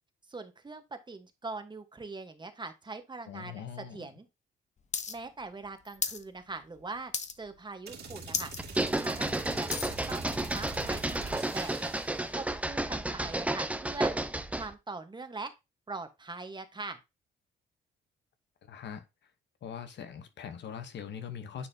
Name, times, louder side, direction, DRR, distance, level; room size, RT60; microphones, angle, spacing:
voice 1, 0.3-4.3 5.1-7.1 7.4-8.5 8.9-11.9 12.3-14.1 14.5-15.5 15.9-17.0, right 3 dB, 20° right, 1.2 m, -42 dB
voice 2, 3.3-4.1 18.6-19.0 19.6-21.7, left 7 dB, 60° left, 1.0 m, -42 dB
sound 1, 4.9-5.1 5.4-6.2 6.6-6.8 7.1-7.6 7.9-8.0 8.3-8.6 9.0-10.0 10.6-10.7, left 5 dB, 35° left, 0.8 m, -34 dB
sound 2, 7.9-12.3, right 3 dB, 55° right, 2.4 m, -44 dB
sound 3, 8.6-14.7, right 1 dB, 5° right, 0.6 m, -32 dB
9.9 x 4.1 x 2.7 m
cardioid pair, 90°, 20 cm